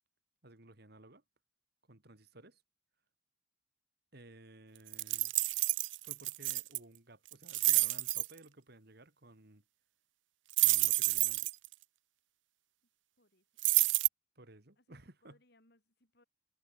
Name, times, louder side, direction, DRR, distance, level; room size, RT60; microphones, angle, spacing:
voice 1, 0.4-1.2 1.9-2.6 4.1-5.3 6.0-9.6 10.6-11.5 14.4-15.4, right 2 dB, 55° right, 2.9 m, -56 dB
sound 1, 4.9-6.8 7.3-8.3 10.5-11.7 13.6-14.1, right 20 dB, 75° right, 0.5 m, -29 dB
voice 2, 14.8-16.2, left 1 dB, 60° left, 7.3 m, -69 dB
head